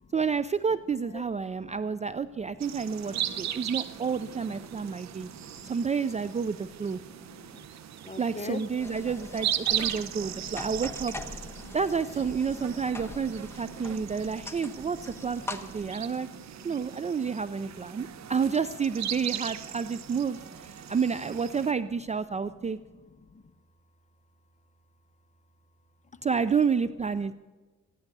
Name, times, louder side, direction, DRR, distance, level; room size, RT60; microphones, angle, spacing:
voice 1, 0.1-5.3 5.6-7.0 8.2-11.4 11.7-16.3 16.6-22.8 26.2-27.3, right 6 dB, 25° right, 14 dB, 0.4 m, -30 dB
sound 1, 2.6-21.7, right 10 dB, 65° right, 0.8 m, -38 dB
voice 2, 3.0-3.9 4.6-5.8 6.9-7.7 8.0-8.6 10.0-10.7 11.6-11.8 12.5-14.7 15.6-16.8 17.3-17.4 17.7-18.3 20.8-20.9 22.9-23.4, left 4 dB, 25° left, 8 dB, 1.1 m, -47 dB
sound 2, 8.8-15.9, left 2 dB, 10° left, 1.2 m, -43 dB
14.5 x 11.5 x 6.8 m, 1.3 s
cardioid pair, 90°, 30 cm